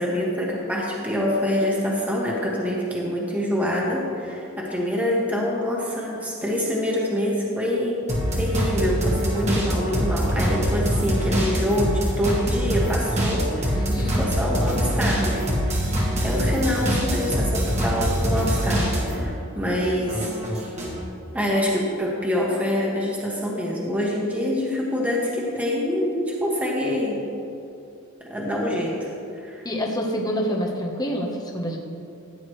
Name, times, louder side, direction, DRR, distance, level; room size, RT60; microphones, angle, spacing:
voice 1, 0.0-8.0 8.3-15.8 16.2-20.8 21.3-27.2 28.2-29.6, left 1 dB, 5° right, -4 dB, 1.4 m, -26 dB
sound 1, 8.1-19.3 19.6-21.0, equal, 30° right, 1.7 m, -24 dB
voice 2, 13.7-14.3 29.6-31.8, equal, 15° left, 0 dB, 1.1 m, -27 dB
14.5 x 9.5 x 3.2 m, 2.6 s
head